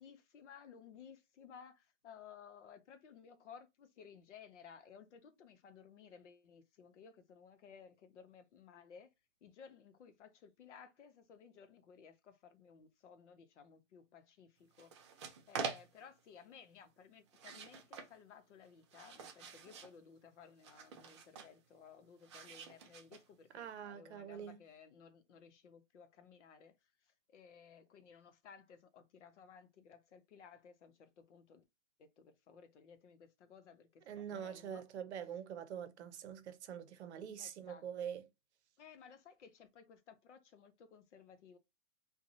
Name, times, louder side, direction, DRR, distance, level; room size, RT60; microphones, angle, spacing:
voice 1, 0.0-9.1 9.4-31.6 32.0-34.8 37.4-37.9 38.8-41.6, left 7 dB, 65° left, 0.8 m, -58 dB
sound 1, 14.7-16.2 17.3-18.1 18.6-20.0 20.6-21.6 22.2-23.5, right 5 dB, 25° right, 0.4 m, -46 dB
voice 2, 23.5-24.6 34.1-38.3, right 8 dB, 60° right, 0.7 m, -45 dB
2.7 x 2.3 x 2.6 m
hypercardioid pair, 135°, 39 cm